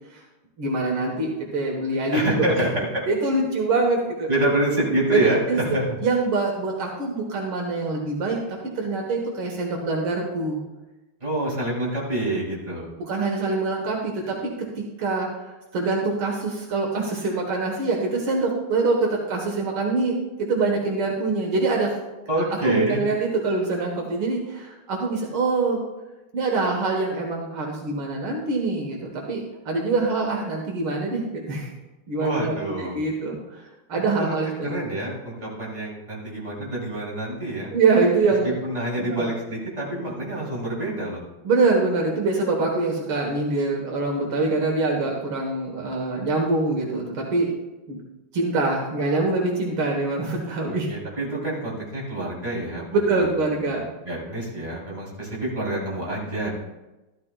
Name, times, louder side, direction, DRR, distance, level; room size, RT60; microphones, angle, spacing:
voice 1, 0.6-2.4 3.1-4.3 5.1-5.2 5.5-5.6 6.0-10.6 13.1-14.5 14.8-21.9 22.6-25.8 26.3-31.7 32.1-33.6 33.9-34.8 37.7-38.5 39.0-39.2 41.4-47.5 47.9-48.0 48.3-50.9 52.9-53.8, right 3 dB, 75° right, 0 dB, 2.2 m, -24 dB
voice 2, 2.1-2.9 4.3-6.0 11.2-12.9 22.3-23.0 32.2-33.0 34.2-34.4 34.6-37.7 38.6-41.2 50.7-53.3 53.7-56.5, right 1 dB, 15° right, -5 dB, 3.3 m, -27 dB
13.0 x 13.0 x 2.3 m, 1.0 s
omnidirectional pair, 2.4 m